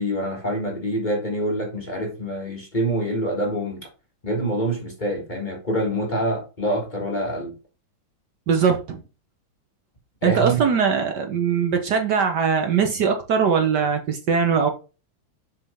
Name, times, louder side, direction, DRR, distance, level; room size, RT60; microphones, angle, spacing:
voice 1, 0.0-3.8 4.2-7.5 10.2-10.7, right 1 dB, 25° left, 1.7 m, -26 dB
voice 2, 8.5-9.0 10.2-14.7, right 6 dB, 60° right, 1.5 m, -21 dB
7.0 x 5.7 x 3.5 m
omnidirectional pair, 2.2 m